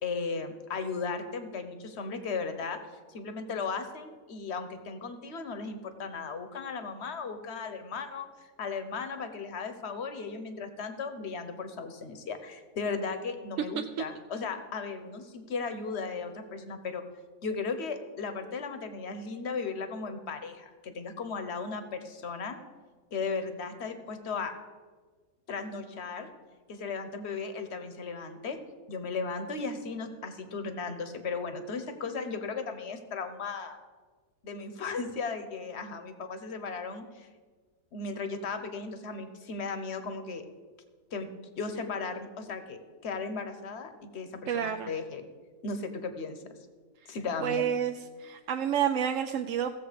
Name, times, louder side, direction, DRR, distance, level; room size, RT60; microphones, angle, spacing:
voice 1, 0.0-2.8 3.1-8.3 8.6-17.0 17.4-22.6 23.1-24.5 25.5-26.3 26.7-28.6 28.9-33.8 34.4-37.3 37.9-40.4 41.1-45.2 45.6-46.6 47.1-47.6, left 4 dB, 50° left, 9 dB, 1.1 m, -36 dB
voice 2, 44.5-44.9 47.4-49.7, right 8 dB, 70° right, 5 dB, 0.8 m, -29 dB
16.0 x 7.2 x 5.1 m, 1.5 s
omnidirectional pair, 1.7 m